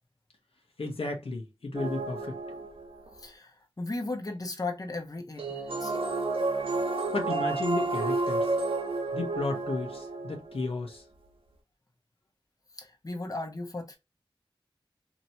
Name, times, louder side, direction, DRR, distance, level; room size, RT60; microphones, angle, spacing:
voice 1, 0.8-2.3 7.1-8.5 9.1-11.0, left 3 dB, 85° left, 1.1 m, -33 dB
sound 1, 1.7-3.1 5.4-10.6, right 3 dB, 75° right, 0.9 m, -31 dB
voice 2, 3.2-6.0 12.7-14.0, left 2 dB, 40° left, 0.9 m, -36 dB
3.0 x 2.9 x 2.7 m
wide cardioid pair, 45°, 10 cm